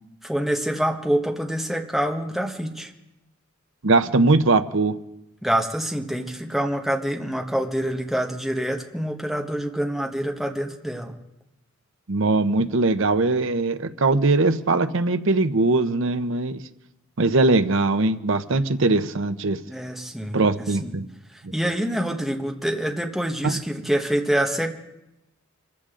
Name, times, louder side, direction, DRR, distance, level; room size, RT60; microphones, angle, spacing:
voice 1, 0.2-2.9 5.4-11.2 19.7-20.4 20.8-20.9 21.5-24.8, right 1 dB, ahead, 2 dB, 1.4 m, -26 dB
voice 2, 3.8-5.0 12.1-16.6 17.2-19.6 20.3-21.1 21.4-21.5 23.4-23.5, right 3 dB, 65° right, 10 dB, 0.8 m, -21 dB
25.5 x 15.0 x 3.8 m, 0.91 s
head